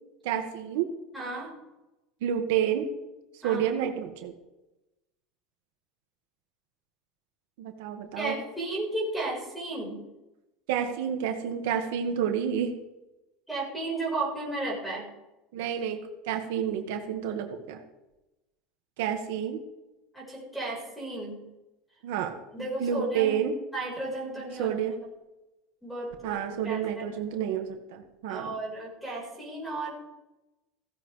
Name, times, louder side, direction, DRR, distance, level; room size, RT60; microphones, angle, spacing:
voice 1, 0.2-0.9 2.2-2.9 3.4-4.3 7.6-8.3 10.7-12.7 15.5-16.0 16.2-17.8 19.0-19.6 22.0-23.5 24.6-24.9 26.2-28.5, right 9 dB, 75° right, 4 dB, 1.6 m, -29 dB
voice 2, 1.1-1.5 3.4-3.7 8.1-10.0 13.5-15.1 20.1-21.4 22.5-24.7 25.0-25.1 25.8-27.0 28.3-29.9, right 2 dB, ahead, -2 dB, 4.4 m, -34 dB
16.0 x 15.0 x 3.3 m, 1.0 s
cardioid pair, 180°, 0 cm